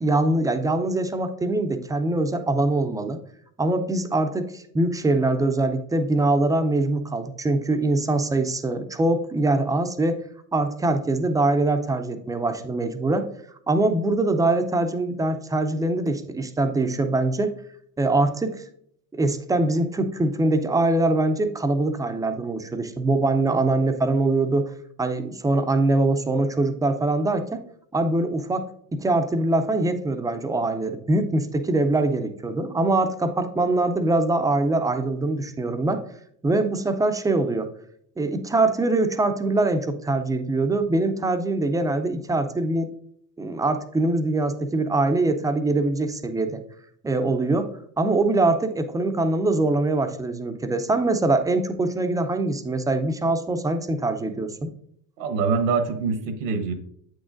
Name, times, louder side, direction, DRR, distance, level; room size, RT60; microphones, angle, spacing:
voice 1, 0.0-3.2 3.6-10.2 10.5-13.3 13.7-17.5 18.0-18.6 19.1-24.7 25.0-27.6 27.9-28.7 28.9-36.0 36.4-37.7 38.2-42.9 43.4-46.6 47.0-54.7, right 2 dB, 10° right, 8 dB, 0.4 m, -23 dB
voice 2, 55.2-56.7, right 5 dB, 80° right, 8 dB, 1.0 m, -24 dB
7.7 x 6.3 x 2.5 m, 0.68 s
supercardioid pair, 100°, 39 cm